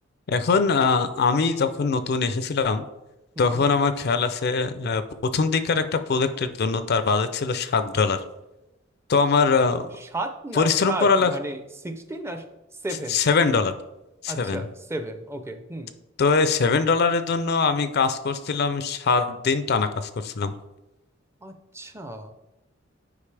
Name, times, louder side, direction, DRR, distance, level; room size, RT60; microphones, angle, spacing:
voice 1, 0.3-2.8 3.4-5.0 5.3-8.2 9.1-9.9 10.5-11.3 13.1-13.7 14.2-14.7 16.2-20.5, left 4 dB, 55° left, 11 dB, 0.5 m, -22 dB
voice 2, 3.4-3.7 10.1-11.6 11.8-12.4 12.8-13.2 14.3-15.9 21.4-22.3, right 1 dB, 15° right, 7 dB, 0.5 m, -33 dB
8.4 x 5.1 x 3.3 m, 0.97 s
head